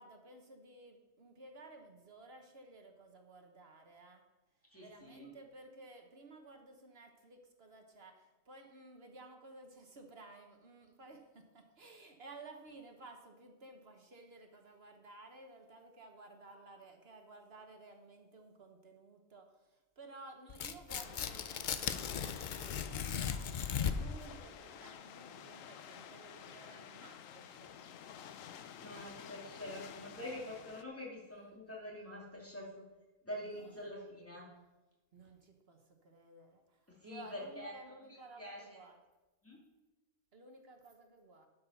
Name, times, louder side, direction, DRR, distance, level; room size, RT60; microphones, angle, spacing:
voice 1, 0.0-4.2 4.8-27.7 31.7-31.8 33.4-33.9 35.1-39.0 40.3-41.5, right 2 dB, 55° right, 4 dB, 1.3 m, -55 dB
voice 2, 4.7-5.3 28.8-32.7 33.2-34.5 37.0-37.7 38.0-38.6 39.4-39.6, left 1 dB, 10° left, -4 dB, 2.9 m, -46 dB
Tearing, 20.5-24.2, left 7 dB, 55° left, 0.5 m, -37 dB
sound 1, 20.9-30.8, left 8 dB, 90° left, 1.1 m, -51 dB
12.0 x 5.5 x 5.6 m, 1.1 s
omnidirectional pair, 1.3 m